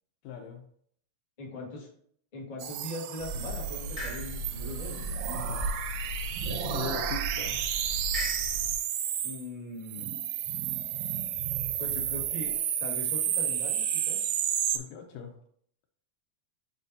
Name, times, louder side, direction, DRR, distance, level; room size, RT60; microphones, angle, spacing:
voice 1, 0.2-0.6 5.3-5.6 6.5-7.6 14.7-15.4, left 7 dB, 75° left, 3 dB, 1.8 m, -40 dB
voice 2, 1.4-1.9 2.3-5.5 9.2-10.1 11.8-12.5 12.8-14.3, left 1 dB, 40° left, -4 dB, 0.5 m, -40 dB
sound 1, 2.6-9.4 9.8-14.8, right 10 dB, 80° right, 1.6 m, -32 dB
sound 2, 3.2-8.7, right 1 dB, 15° left, 1.9 m, -36 dB
7.3 x 5.1 x 2.7 m, 0.62 s
omnidirectional pair, 3.6 m